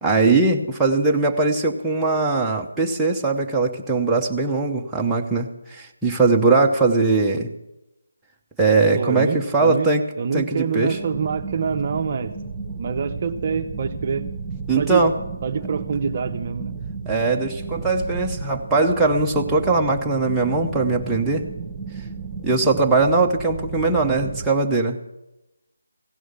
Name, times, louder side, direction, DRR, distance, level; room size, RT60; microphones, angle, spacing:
voice 1, 0.0-7.5 8.6-10.0 10.3-11.0 14.7-15.1 17.1-21.5 22.4-25.0, right 3 dB, 5° right, -3 dB, 0.8 m, -20 dB
voice 2, 8.9-9.9 10.2-12.3 12.8-14.3 14.8-15.1 15.4-16.7, right 6 dB, 35° right, 6 dB, 0.7 m, -26 dB
sound 1, 10.9-24.5, right 4 dB, 20° right, 1.3 m, -33 dB
16.0 x 6.2 x 9.6 m, 0.94 s
figure-of-eight pair, 160°, 0 cm